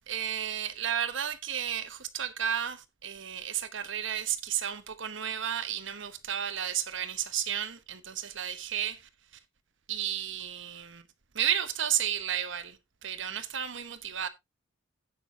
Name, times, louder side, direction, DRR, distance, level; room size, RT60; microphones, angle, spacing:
voice 1, 0.1-9.0 9.9-11.0 11.3-12.8 13.0-14.3, right 9 dB, 60° right, 1.0 m, -32 dB
16.0 x 6.2 x 2.8 m
head